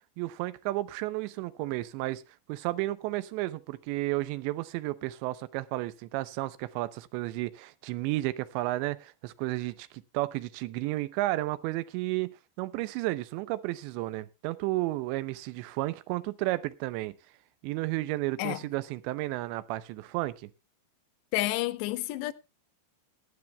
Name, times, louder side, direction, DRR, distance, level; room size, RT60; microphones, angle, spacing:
voice 1, 0.2-2.2 2.5-17.2 17.6-20.5, right 18 dB, 90° right, 3.0 m, -32 dB
voice 2, 21.3-22.3, left 17 dB, 85° left, 2.9 m, -30 dB
19.0 x 10.5 x 2.2 m
omnidirectional pair, 5.0 m